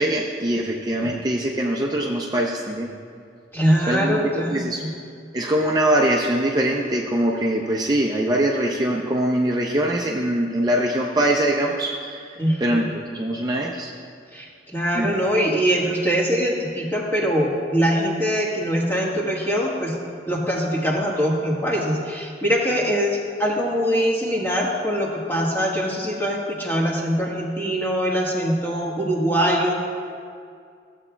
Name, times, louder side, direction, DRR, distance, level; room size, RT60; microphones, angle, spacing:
voice 1, 0.0-2.9 3.9-4.8 5.3-13.9 14.9-15.2, right 1 dB, 20° right, -1 dB, 0.4 m, -23 dB
voice 2, 3.5-4.6 12.4-12.8 14.3-19.9 20.3-29.7, equal, 15° left, -3 dB, 1.3 m, -23 dB
15.0 x 8.0 x 2.2 m, 2.3 s
head